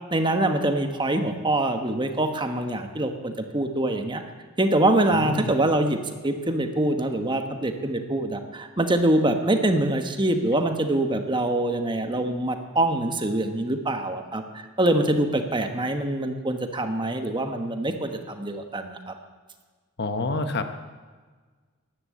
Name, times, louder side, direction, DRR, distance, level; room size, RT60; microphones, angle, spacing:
voice 1, 0.1-4.2 4.6-19.1, right 1 dB, 20° right, 6 dB, 1.2 m, -24 dB
voice 2, 5.1-5.5 20.0-20.8, left 2 dB, 55° left, 8 dB, 1.1 m, -28 dB
14.0 x 11.5 x 8.5 m, 1.4 s
head